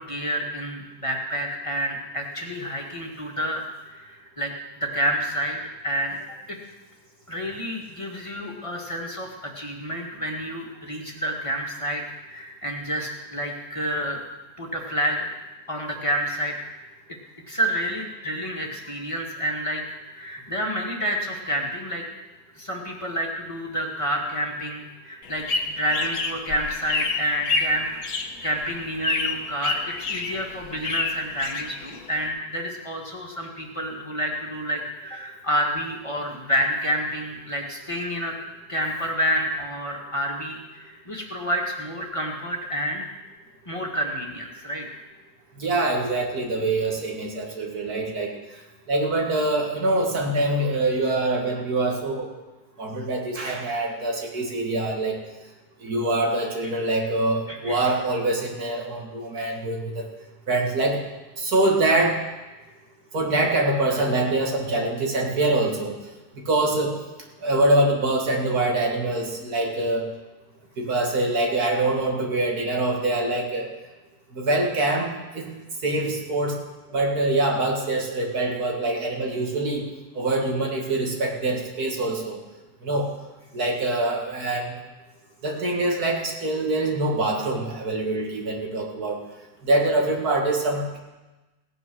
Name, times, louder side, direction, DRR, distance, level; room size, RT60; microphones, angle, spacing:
voice 1, 0.0-3.6 3.9-4.5 4.8-6.2 6.5-6.6 7.3-14.2 14.6-15.2 15.7-16.6 17.5-19.8 20.1-22.0 22.6-27.9 28.4-38.3 38.7-43.1 43.7-45.0 57.5-57.9, equal, 20° left, 0 dB, 1.9 m, -29 dB
sound 1, 25.2-32.3, left 3 dB, 70° left, 1.5 m, -29 dB
voice 2, 45.6-48.3 48.9-52.3 52.8-55.2 55.8-60.0 60.5-61.0 61.4-62.2 63.1-66.0 66.5-66.9 67.4-70.1 70.8-73.7 74.3-75.1 75.3-75.5 75.8-76.6 76.9-79.8 80.2-82.4 82.8-83.1 83.5-84.7 85.4-89.2 89.6-91.0, right 2 dB, 85° right, 0 dB, 2.6 m, -24 dB
16.5 x 9.3 x 6.3 m, 1.1 s
omnidirectional pair, 1.6 m